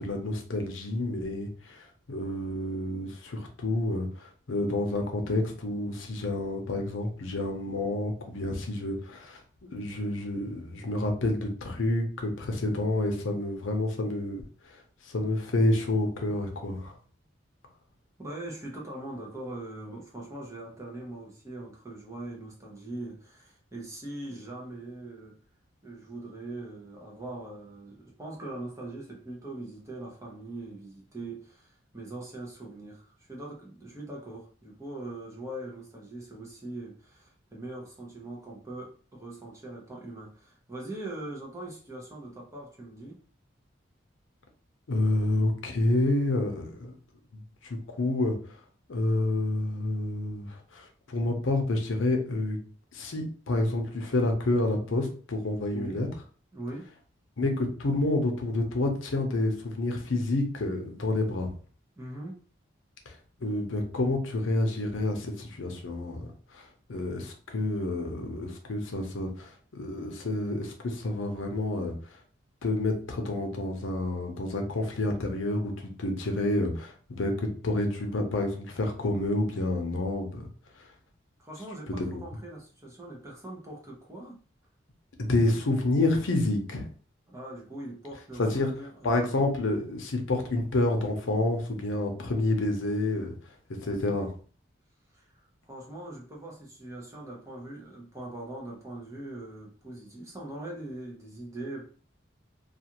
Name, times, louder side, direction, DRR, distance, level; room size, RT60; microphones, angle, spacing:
voice 1, 0.0-9.4 9.7-14.4 15.0-16.9 44.9-46.9 47.6-48.4 48.9-52.6 52.9-56.1 57.4-61.5 63.1-63.2 63.4-66.3 66.5-71.9 72.6-80.5 80.8-80.9 81.9-82.2 85.2-86.9 88.4-88.7 89.0-93.3 93.8-94.3, left 2 dB, 90° left, 0.6 m, -29 dB
voice 2, 18.2-25.4 25.8-43.2 55.7-56.1 56.5-56.9 62.0-62.4 81.4-84.4 87.3-89.4 95.1-101.9, right 2 dB, 15° right, 0.7 m, -41 dB
2.4 x 2.4 x 2.9 m
head